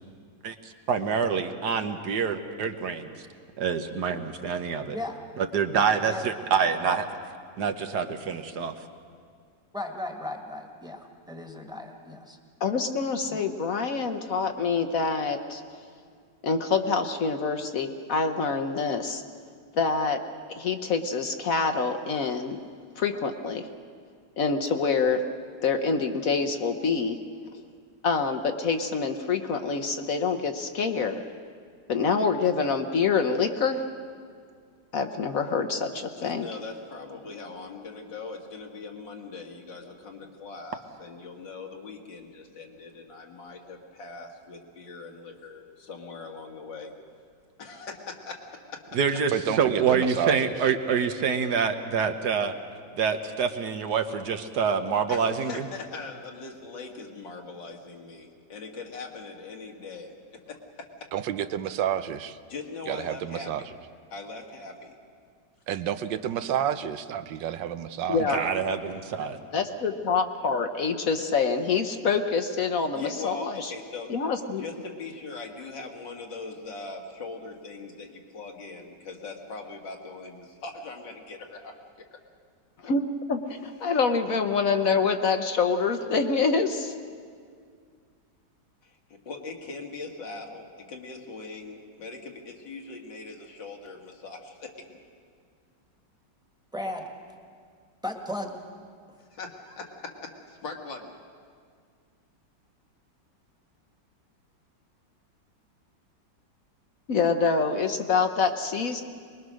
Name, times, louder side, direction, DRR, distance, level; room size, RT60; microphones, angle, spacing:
voice 1, 0.9-3.1 3.6-5.0 5.4-7.1 7.6-8.7 48.9-49.3 49.6-52.5 53.0-55.6 68.2-69.4, right 6 dB, 65° right, 7 dB, 1.6 m, -26 dB
voice 2, 9.7-12.4 13.2-13.5 96.7-97.1 98.0-98.6, left 1 dB, ahead, 3 dB, 1.6 m, -36 dB
voice 3, 12.6-15.6 16.4-19.2 19.8-20.2 20.5-22.6 23.0-23.6 24.4-25.2 25.6-27.2 28.0-31.2 31.9-33.8 34.9-36.5 68.1-68.4 69.5-73.7 74.1-74.6 82.8-83.0 83.3-86.9 107.1-109.0, left 5 dB, 55° left, 7 dB, 1.2 m, -26 dB
voice 4, 36.2-46.9 47.6-48.8 55.1-60.9 62.5-63.7 64.1-65.0 72.9-74.1 74.6-82.1 88.8-95.0 99.3-101.1, left 3 dB, 85° left, 1 dB, 2.5 m, -41 dB
voice 5, 49.3-50.5 61.1-62.4 62.9-63.6 65.7-68.4, right 10 dB, 85° right, 12 dB, 1.4 m, -30 dB
23.5 x 21.0 x 6.4 m, 2.1 s
omnidirectional pair, 1.9 m